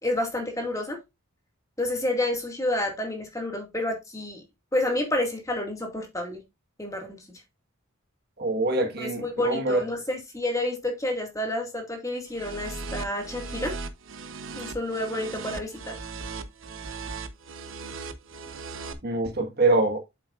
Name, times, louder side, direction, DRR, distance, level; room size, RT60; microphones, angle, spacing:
voice 1, 0.0-1.0 1.8-4.4 4.7-6.4 6.8-7.2 9.0-13.7 14.6-16.0, left 1 dB, 15° left, 2.1 m, -29 dB
voice 2, 8.4-9.8 19.0-20.0, right 2 dB, 50° right, 1.5 m, -24 dB
sound 1, 12.3-18.9, right 4 dB, 65° right, 1.0 m, -37 dB
8.3 x 7.6 x 2.5 m
head